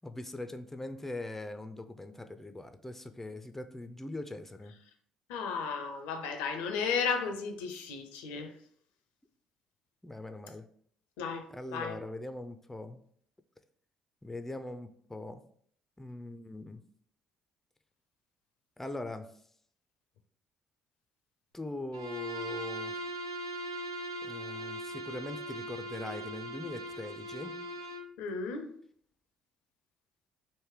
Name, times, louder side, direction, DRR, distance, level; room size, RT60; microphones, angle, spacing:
voice 1, 0.0-4.8 10.0-10.7 11.5-13.0 14.2-15.4 16.0-16.8 18.8-19.3 21.5-22.9 24.2-27.6, left 2 dB, 10° left, 0.4 m, -41 dB
voice 2, 5.3-8.5 11.2-12.0 28.2-28.8, left 5 dB, 70° left, 0.4 m, -34 dB
Bowed string instrument, 21.9-28.1, right 1 dB, 85° right, 0.3 m, -40 dB
3.2 x 2.6 x 3.6 m
figure-of-eight pair, 50°, 2 cm